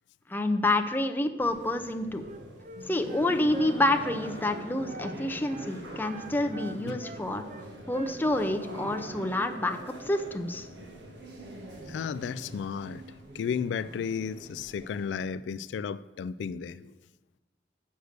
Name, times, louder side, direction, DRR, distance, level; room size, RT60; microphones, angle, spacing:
voice 1, 0.3-2.2 2.9-7.4 7.9-10.7, left 1 dB, 10° left, 0.6 m, -28 dB
sound 1, 1.4-15.3, right 1 dB, 80° right, 1.6 m, -43 dB
Wind instrument woodwind instrument, 2.2-5.2 5.4-5.7 6.0-8.6 8.9-9.6, right 2 dB, 45° right, 0.6 m, -45 dB
voice 2, 11.9-13.0 13.3-16.9, left 6 dB, 80° left, 0.3 m, -33 dB
8.1 x 6.5 x 6.6 m
head